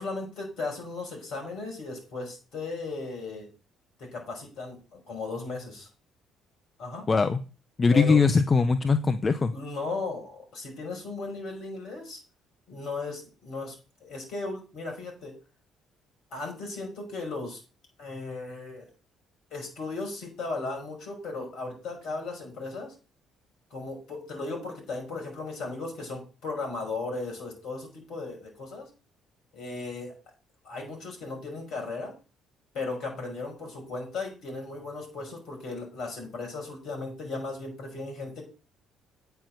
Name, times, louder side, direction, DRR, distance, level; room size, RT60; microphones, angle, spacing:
voice 1, 0.0-3.5 4.0-5.9 6.8-7.0 7.9-8.2 9.5-12.2 12.7-13.8 14.0-15.4 16.3-17.6 18.0-18.9 19.5-22.9 23.7-28.9 29.5-30.1 30.6-32.1 32.7-38.4, left 3 dB, 60° left, 2 dB, 5.6 m, -36 dB
voice 2, 7.1-7.4 7.8-9.5, left 4 dB, 30° left, 10 dB, 0.8 m, -21 dB
9.1 x 7.1 x 6.5 m, 0.33 s
figure-of-eight pair, 50°, 0 cm